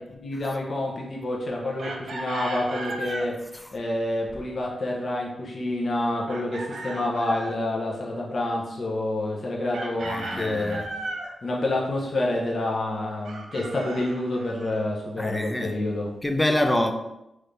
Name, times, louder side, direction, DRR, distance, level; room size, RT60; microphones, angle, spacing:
voice 1, 0.1-3.4 3.7-10.8 11.4-16.1, left 1 dB, 60° left, 0.7 m, -28 dB
Chicken rooster, 1.8-3.3 6.3-7.6 9.7-11.3 13.2-14.8, right 2 dB, 75° right, 0.5 m, -36 dB
voice 2, 10.1-10.8 15.2-15.7 16.2-16.9, left 1 dB, 15° left, 0.5 m, -25 dB
3.1 x 2.6 x 3.2 m
supercardioid pair, 45°, 0 cm